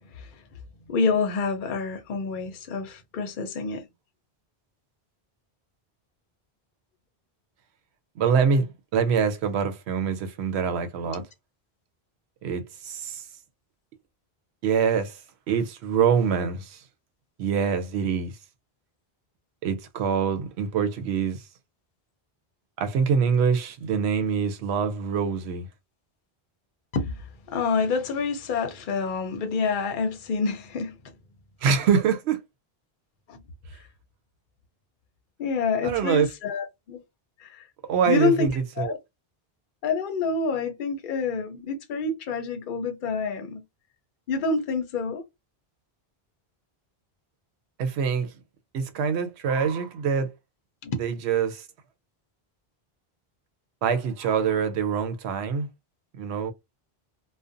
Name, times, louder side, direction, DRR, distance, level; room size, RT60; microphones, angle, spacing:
voice 1, 0.9-3.9 11.1-11.2 26.9-31.0 33.3-33.4 35.4-37.0 37.4-37.7 38.0-38.5 38.8-39.0 39.8-43.6 44.3-45.3 50.8-51.0, left 4 dB, 60° left, 0.7 m, -27 dB
voice 2, 8.2-11.2 12.4-13.3 14.6-15.2 15.5-16.8 17.4-18.3 19.6-21.4 22.8-25.7 31.6-32.4 35.8-36.3 37.9-38.5 38.8-38.9 47.8-48.3 48.7-50.3 51.0-51.7 53.8-55.7 56.2-56.5, right 6 dB, 90° right, 0.9 m, -25 dB
2.5 x 2.1 x 2.5 m
omnidirectional pair, 1.1 m